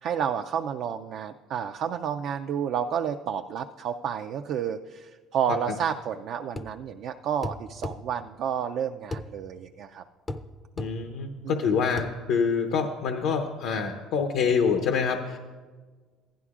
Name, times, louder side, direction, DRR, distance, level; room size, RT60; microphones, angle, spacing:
voice 1, 0.0-10.0 11.4-11.8, right 8 dB, 55° right, 5 dB, 0.3 m, -30 dB
sound 1, 6.6-6.8 7.4-8.0 9.1-9.3 10.3-10.5 10.8-10.9 12.0-12.1, left 2 dB, 15° left, 0.4 m, -33 dB
voice 2, 10.8-15.4, left 6 dB, 75° left, 4 dB, 0.7 m, -26 dB
15.5 x 11.5 x 2.4 m, 1.4 s
cardioid pair, 140°, 0 cm